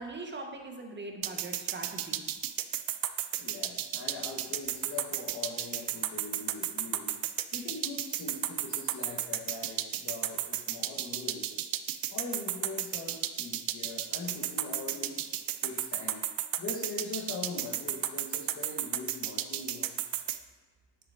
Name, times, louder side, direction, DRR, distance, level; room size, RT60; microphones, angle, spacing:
voice 1, 0.0-2.2, right 2 dB, 20° right, 3 dB, 1.4 m, -41 dB
sound 1, 1.2-20.4, right 13 dB, 45° right, 0.6 m, -33 dB
voice 2, 3.4-7.2 7.5-11.7 12.1-15.2 15.6-16.2 16.6-20.0, left 3 dB, 30° left, -4 dB, 1.9 m, -42 dB
9.6 x 6.4 x 2.9 m, 1.3 s
hypercardioid pair, 70°, 49 cm